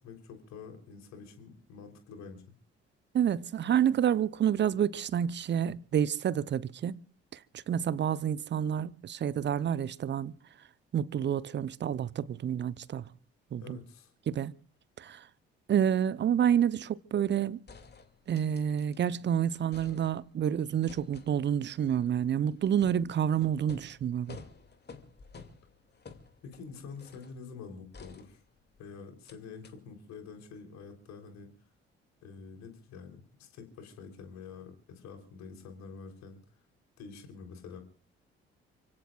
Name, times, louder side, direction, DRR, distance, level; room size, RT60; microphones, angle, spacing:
voice 1, 0.0-2.4 13.6-14.1 26.4-28.4 28.8-31.5 32.2-36.4 37.0-37.8, left 5 dB, 55° left, 3.7 m, -47 dB
voice 2, 3.1-7.0 7.3-10.3 10.9-13.1 13.5-13.8 14.3-14.5 15.0-15.3 15.7-17.6 18.3-24.4, right 9 dB, 35° right, 0.8 m, -29 dB
sound 1, 17.7-19.2 19.5-20.5 20.9-27.4 27.9-28.8 29.3-29.4 29.6-29.7, left 4 dB, 30° left, 2.5 m, -52 dB
29.5 x 17.0 x 2.4 m
figure-of-eight pair, 45°, 32 cm